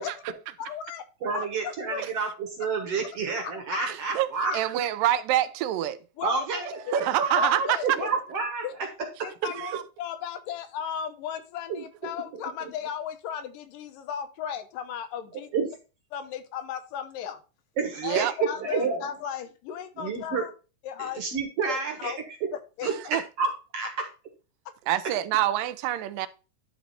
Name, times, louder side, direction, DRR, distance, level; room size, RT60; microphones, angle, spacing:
voice 1, 0.6-1.1 1.3-2.0 3.7-3.9 4.4-4.6 6.2-6.6 6.9-7.0 7.3-8.1 8.6-8.7 9.2-15.5 16.1-17.4 18.0-20.5 20.8-21.2 21.7-22.2 22.5-22.9, left 8 dB, 80° left, 2.5 m, -35 dB
voice 2, 1.2-4.5 6.2-8.6 11.7-11.8 15.5-15.7 17.8-18.3 18.6-19.1 20.0-20.4 21.0-22.1 22.8-22.9 23.4-23.9, right 4 dB, 55° right, 1.9 m, -29 dB
voice 3, 3.9-4.3 4.5-6.0 6.9-7.8 9.6-9.8 18.0-18.3 23.1-23.2 24.9-26.3, right 13 dB, 80° right, 2.2 m, -26 dB
11.0 x 4.1 x 4.2 m
omnidirectional pair, 3.9 m